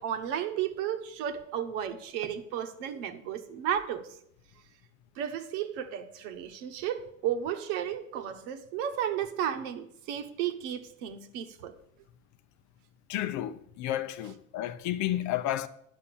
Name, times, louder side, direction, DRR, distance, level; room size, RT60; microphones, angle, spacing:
voice 1, 0.0-4.1 5.2-11.7, right 9 dB, 65° right, 1.2 m, -33 dB
voice 2, 13.1-15.7, left 13 dB, 45° left, 0.7 m, -31 dB
10.5 x 5.6 x 7.0 m
supercardioid pair, 105°, 40 cm